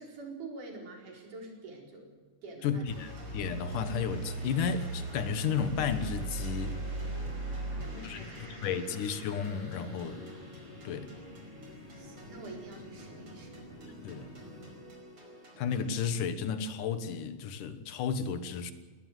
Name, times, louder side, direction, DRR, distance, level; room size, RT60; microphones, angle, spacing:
voice 1, 0.0-2.1 2.4-2.9 7.5-8.8 11.7-13.6, right 3 dB, 80° right, 1 dB, 5.9 m, -47 dB
voice 2, 2.6-6.8 8.0-10.2 10.8-11.1 14.0-14.3 15.6-18.7, left 7 dB, 85° left, 11 dB, 2.9 m, -33 dB
sound 1, 2.9-16.3, right 2 dB, 35° right, 5.7 m, -41 dB
sound 2, 4.6-14.8, left 1 dB, 55° left, 5.2 m, -50 dB
21.0 x 19.0 x 7.9 m, 1.4 s
omnidirectional pair, 3.6 m